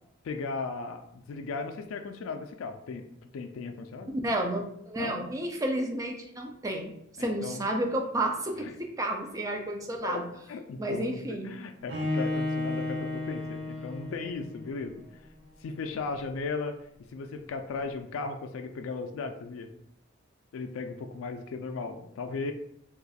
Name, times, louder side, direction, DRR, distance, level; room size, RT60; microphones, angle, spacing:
voice 1, 0.2-3.0 3.3-4.1 5.0-5.2 7.2-7.6 8.6-8.7 10.0-10.2 10.5-15.2 15.6-16.7 17.1-19.7 20.5-22.5, left 4 dB, 85° left, 6 dB, 0.3 m, -36 dB
voice 2, 4.2-10.3 10.8-11.5, right 1 dB, 15° right, 2 dB, 0.4 m, -31 dB
Bowed string instrument, 11.9-14.9, left 2 dB, 65° right, 0.7 m, -33 dB
2.5 x 2.3 x 3.9 m, 0.74 s
head